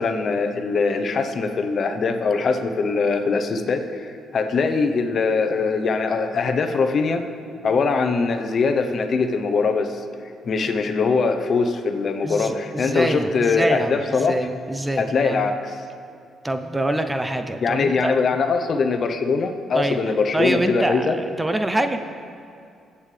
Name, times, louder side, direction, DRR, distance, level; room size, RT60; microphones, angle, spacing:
voice 1, 0.0-7.3 7.6-10.0 10.5-14.4 15.0-15.6 17.6-21.2, left 4 dB, 50° left, 6 dB, 0.9 m, -22 dB
voice 2, 12.2-15.5 16.4-18.2 19.7-22.0, right 1 dB, 10° right, 8 dB, 0.6 m, -25 dB
21.5 x 8.4 x 3.4 m, 2.4 s
cardioid pair, 90°, 0 cm